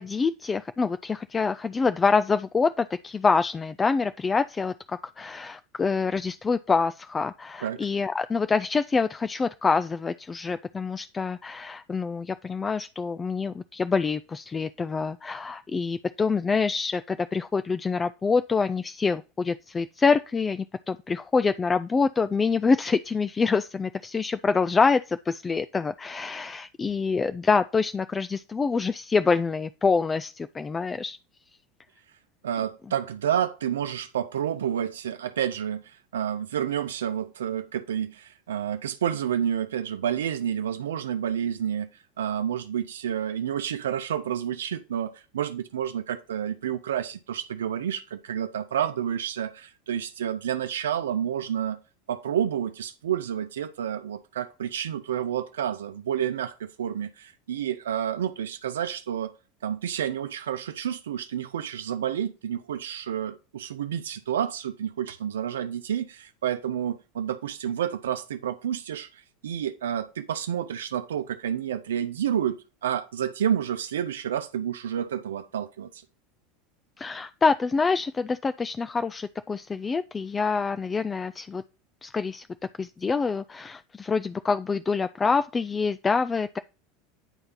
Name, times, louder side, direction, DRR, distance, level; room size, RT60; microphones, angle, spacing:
voice 1, 0.0-31.2 77.0-81.6 82.0-82.5 82.8-86.6, left 4 dB, 20° left, 0.4 m, -26 dB
voice 2, 32.4-41.9 42.2-51.8 52.1-59.3 59.6-76.0, right 9 dB, 70° right, 0.6 m, -29 dB
9.9 x 3.3 x 5.5 m
figure-of-eight pair, 75°, 0 cm